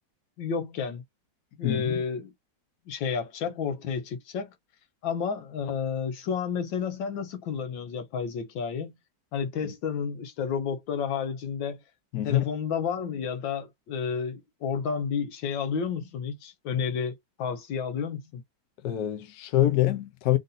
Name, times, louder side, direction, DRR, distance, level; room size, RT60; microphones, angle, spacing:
voice 1, 0.4-1.0 1.6-2.3 2.9-4.5 5.0-8.9 9.3-11.8 12.2-18.4, left 6 dB, 90° left, 1.7 m, -31 dB
voice 2, 1.6-2.0 9.6-9.7 12.1-12.4 18.8-20.4, left 14 dB, 65° left, 1.2 m, -25 dB
3.8 x 2.7 x 3.9 m
omnidirectional pair, 2.0 m